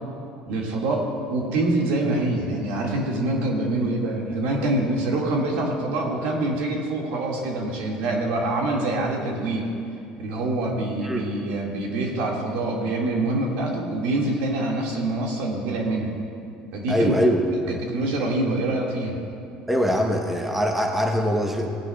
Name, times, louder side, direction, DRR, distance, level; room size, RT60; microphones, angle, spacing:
voice 1, 0.5-9.7 10.2-16.1 16.7-17.2 17.8-19.2, right 2 dB, 80° right, -1 dB, 2.0 m, -25 dB
voice 2, 16.9-17.8 19.7-21.7, equal, 5° right, 2 dB, 0.9 m, -23 dB
17.0 x 9.6 x 2.3 m, 2.6 s
cardioid pair, 120°, 3 cm